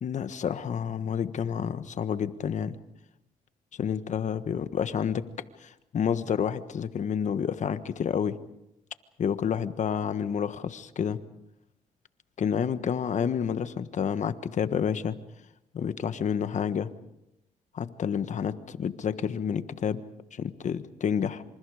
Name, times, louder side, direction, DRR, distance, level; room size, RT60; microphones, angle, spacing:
voice 1, 0.0-2.8 3.8-5.3 5.6-8.4 9.2-11.2 12.4-15.2 15.7-16.9 17.7-20.0 20.3-21.4, left 7 dB, 60° left, 12 dB, 1.4 m, -29 dB
28.0 x 26.5 x 5.0 m, 0.88 s
cardioid pair, 80°, 14 cm